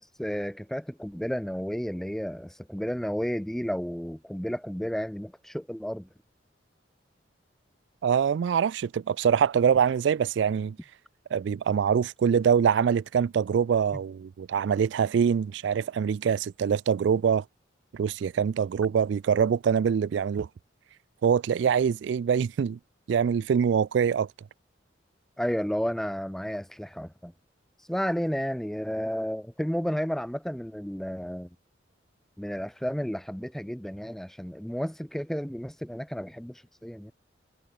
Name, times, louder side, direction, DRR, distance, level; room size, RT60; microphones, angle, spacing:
voice 1, 0.2-6.1 25.4-27.3 27.9-31.5 32.4-37.1, equal, ahead, 0.5 m, -32 dB
voice 2, 8.0-10.8 11.3-17.4 17.9-20.5 21.2-22.8 23.1-24.3, right 7 dB, 65° right, 0.3 m, -24 dB
head